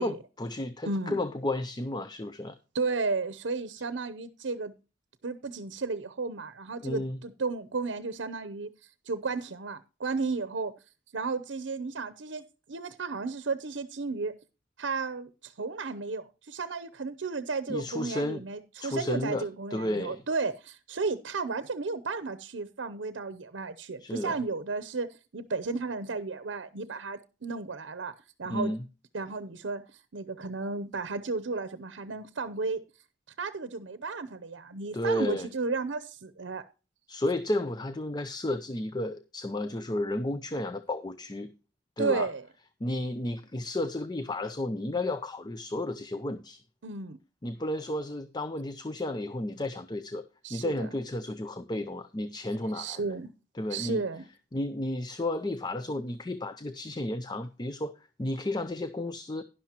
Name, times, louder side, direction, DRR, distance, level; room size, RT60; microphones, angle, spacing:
voice 1, 0.0-2.6 6.8-7.2 17.7-18.4 18.8-20.2 24.0-24.4 28.5-28.8 34.9-35.5 37.1-41.5 42.0-42.3 42.8-46.6 47.4-50.2 50.5-53.0 53.6-54.1 54.5-59.4, left 1 dB, 20° left, 0.5 m, -32 dB
voice 2, 0.9-1.2 2.7-4.7 5.2-10.7 11.1-14.3 14.8-28.1 28.4-28.7 29.1-32.8 33.4-36.7 42.0-42.4 46.8-47.2 50.4-50.9 52.7-53.3 53.7-54.2, right 4 dB, 80° right, 0.7 m, -33 dB
11.5 x 11.0 x 2.9 m
head